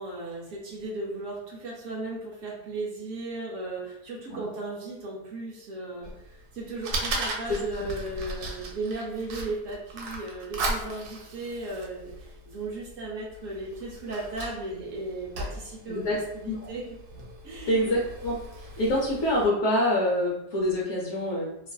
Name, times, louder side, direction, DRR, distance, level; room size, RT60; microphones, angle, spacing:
voice 1, 0.0-16.8 17.4-17.9, right 2 dB, 65° right, -3 dB, 0.9 m, -36 dB
Fire, 6.0-19.5, right 2 dB, 90° right, 1.1 m, -37 dB
voice 2, 7.5-7.8 15.9-16.2 16.4-16.7 17.7-21.5, left 1 dB, 65° left, -3 dB, 0.8 m, -26 dB
2.6 x 2.4 x 2.2 m, 0.83 s
omnidirectional pair, 1.6 m